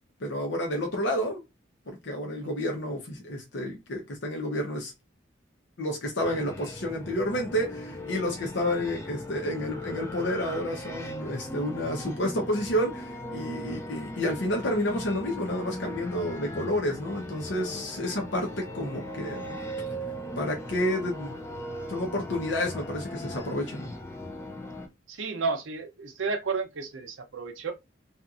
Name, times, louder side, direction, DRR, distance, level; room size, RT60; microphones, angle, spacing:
voice 1, 0.2-1.4 1.9-4.9 5.8-19.6 20.4-21.3 21.9-23.9, left 1 dB, 70° left, 0.8 m, -30 dB
sound 1, 6.2-24.9, left 1 dB, 15° left, 0.4 m, -38 dB
voice 2, 25.1-27.7, right 4 dB, 85° right, 0.6 m, -32 dB
2.8 x 2.5 x 2.4 m
head